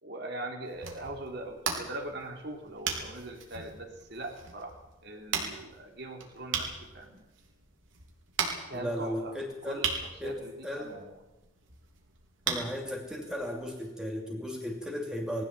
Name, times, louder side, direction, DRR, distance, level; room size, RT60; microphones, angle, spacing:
voice 1, 0.0-7.2 8.7-9.3 9.7-11.1, right 1 dB, 55° right, 2 dB, 3.9 m, -41 dB
sound 1, 0.6-13.9, right 5 dB, 75° right, 4.7 m, -39 dB
voice 2, 8.7-9.9 10.2-11.0 12.5-15.4, equal, 5° right, 0 dB, 2.8 m, -35 dB
21.0 x 16.0 x 9.0 m, 0.97 s
head